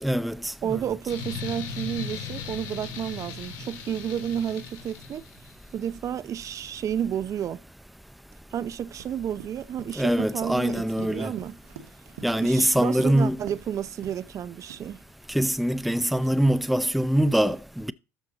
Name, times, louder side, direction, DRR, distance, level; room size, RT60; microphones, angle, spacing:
voice 1, 0.0-0.8 10.0-11.3 12.2-13.4 15.3-17.9, equal, ahead, 0.6 m, -23 dB
voice 2, 0.6-5.3 5.7-7.6 8.5-11.6 12.4-15.0, right 9 dB, 40° right, 0.6 m, -31 dB
sound 1, 1.1-5.5, left 6 dB, 65° left, 3.3 m, -37 dB
Run, 9.0-13.7 14.0-14.3 14.7-16.5, right 7 dB, 80° right, 1.6 m, -46 dB
13.0 x 5.9 x 4.0 m
hypercardioid pair, 75°, 8 cm